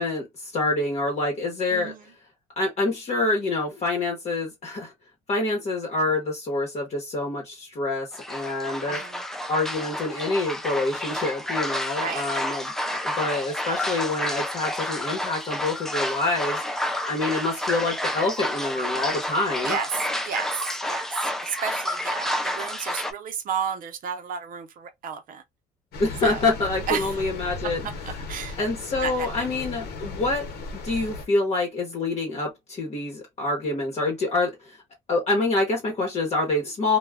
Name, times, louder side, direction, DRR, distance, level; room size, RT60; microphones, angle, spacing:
voice 1, 0.0-2.1 2.6-4.9 5.3-9.0 9.5-19.8 26.0-27.9 28.6-30.5 30.7-34.8 35.1-37.0, left 2 dB, 40° left, 1.0 m, -26 dB
sound 1, 8.1-23.1, left 1 dB, ahead, 0.4 m, -30 dB
voice 2, 8.9-9.2 12.0-12.3 19.6-19.9 20.2-25.4 26.2-26.4 26.9-27.1 27.6-27.7 28.1-28.6 29.0-29.5, right 7 dB, 55° right, 0.6 m, -32 dB
sound 2, 25.9-31.2, left 3 dB, 70° left, 0.8 m, -36 dB
2.2 x 2.1 x 3.3 m
cardioid pair, 110°, 17 cm